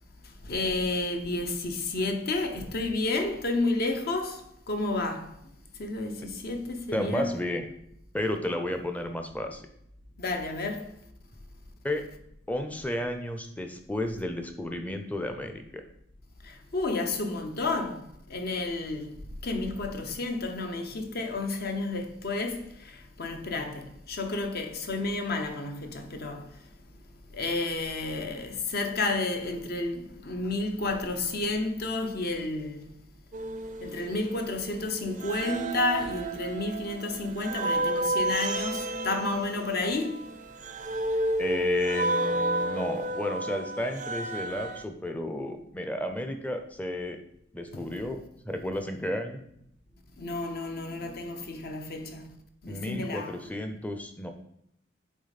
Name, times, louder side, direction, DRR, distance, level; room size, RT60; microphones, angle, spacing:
voice 1, 0.4-5.3 5.8-7.3 10.2-10.9 16.4-18.0 18.3-19.1 19.4-26.4 27.3-32.9 33.8-40.2 47.7-47.9 50.2-52.3 52.6-53.4, left 2 dB, 50° left, 0.8 m, -31 dB
voice 2, 6.9-7.7 8.1-9.7 11.8-12.1 12.5-15.8 41.4-47.2 47.5-49.4 52.6-54.3, left 1 dB, 10° left, 0.6 m, -32 dB
sound 1, 33.3-34.8 35.2-44.8, right 1 dB, 40° right, 0.5 m, -31 dB
8.4 x 3.6 x 4.1 m
head